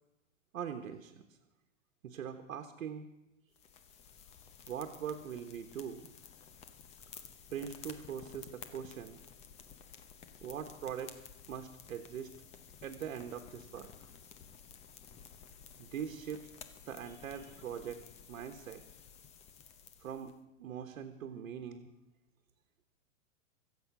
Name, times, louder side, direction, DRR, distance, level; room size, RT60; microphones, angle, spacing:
voice 1, 0.5-1.3 2.0-3.0 4.7-6.1 7.5-9.2 10.4-11.2 11.5-12.3 12.8-13.9 15.8-16.5 16.8-18.0 18.3-18.8 20.0-20.3 20.6-21.9, right 8 dB, 80° right, 6 dB, 1.4 m, -42 dB
sound 1, 3.5-20.4, left 7 dB, 15° left, 0.8 m, -54 dB
24.0 x 8.0 x 6.1 m, 0.98 s
hypercardioid pair, 150°, 40 cm